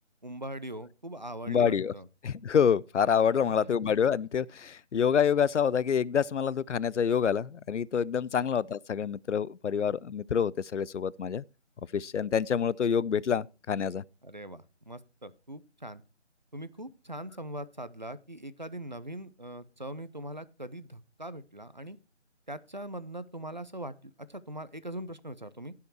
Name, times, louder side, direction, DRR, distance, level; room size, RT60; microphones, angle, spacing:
voice 1, 0.2-2.1 3.4-3.7 8.4-8.5 14.2-16.0 16.5-22.0 22.5-25.7, right 1 dB, 40° right, 0.6 m, -41 dB
voice 2, 1.5-1.9 2.2-11.4 11.9-14.0, left 7 dB, 75° left, 0.6 m, -27 dB
15.5 x 5.7 x 4.5 m
figure-of-eight pair, 175°, 36 cm